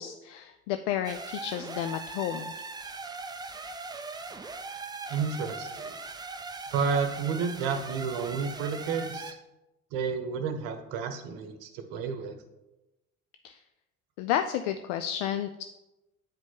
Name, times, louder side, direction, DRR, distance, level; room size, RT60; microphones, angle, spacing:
voice 1, 0.0-2.5 13.4-13.6 14.2-15.6, left 10 dB, 60° left, 9 dB, 0.5 m, -31 dB
sound 1, 1.0-9.3, right 3 dB, 10° right, 0.4 m, -40 dB
voice 2, 5.1-6.0 6.7-9.4 9.9-12.4, right 6 dB, 55° right, 8 dB, 0.9 m, -31 dB
9.1 x 4.9 x 3.7 m, 0.99 s
figure-of-eight pair, 60°, 42 cm